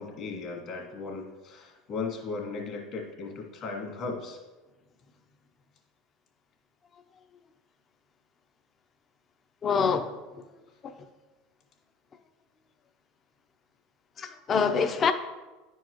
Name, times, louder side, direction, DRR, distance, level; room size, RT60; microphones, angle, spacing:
voice 1, 0.0-4.4, left 4 dB, 50° left, 1.9 m, -36 dB
voice 2, 9.6-10.5 10.8-11.0 14.2-15.1, left 6 dB, 35° left, 0.7 m, -26 dB
10.0 x 4.6 x 3.0 m
hypercardioid pair, 95°, 0 cm